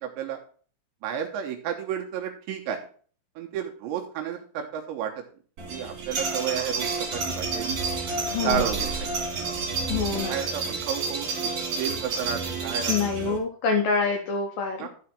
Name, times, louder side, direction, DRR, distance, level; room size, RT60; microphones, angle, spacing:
voice 1, 1.0-2.8 3.4-5.1 5.7-6.9 7.1-7.8 8.4-9.1 9.9-13.4 14.8-14.9, right 8 dB, 75° right, 2 dB, 2.9 m, -32 dB
sound 1, 5.6-13.4, right 4 dB, 45° right, 3.2 m, -30 dB
voice 2, 8.3-8.8 9.9-10.3 12.9-14.9, left 5 dB, 85° left, 2 dB, 1.9 m, -26 dB
11.5 x 4.9 x 4.5 m, 0.43 s
omnidirectional pair, 5.9 m